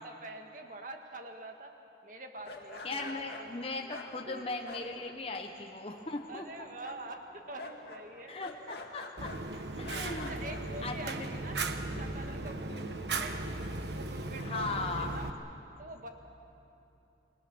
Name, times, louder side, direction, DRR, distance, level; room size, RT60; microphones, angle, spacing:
voice 1, 0.0-1.7 2.0-3.5 4.3-4.5 6.3-8.4 10.1-12.8 13.2-15.3 15.8-16.1, right 2 dB, 45° right, 4 dB, 1.9 m, -46 dB
sound 1, 2.4-5.6 5.9-6.4 6.8-9.4 9.8-10.6, left 3 dB, 65° left, 2.2 m, -47 dB
voice 2, 2.8-6.5 8.3-9.4 9.8-10.5 10.8-11.3 11.9-12.1 12.7-13.0 14.4-15.2, left 3 dB, 30° left, 3 dB, 1.1 m, -38 dB
Fire, 9.2-15.3, right 2 dB, 70° right, 1.3 m, -37 dB
28.0 x 22.5 x 6.3 m, 2.9 s
head